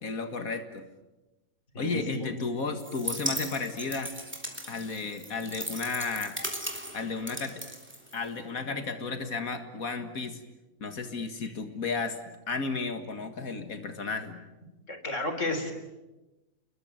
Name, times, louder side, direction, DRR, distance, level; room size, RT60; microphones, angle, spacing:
voice 1, 0.0-0.8 1.8-4.1 4.7-6.4 6.9-7.6 8.1-10.4 10.8-12.2 12.5-14.4, left 4 dB, 85° left, 7 dB, 2.3 m, -33 dB
voice 2, 1.7-2.3 14.9-15.7, left 2 dB, 60° left, 7 dB, 4.3 m, -32 dB
sound 1, 2.8-8.5, equal, 10° right, 3.3 m, -37 dB
28.5 x 22.0 x 9.1 m, 1.1 s
omnidirectional pair, 1.4 m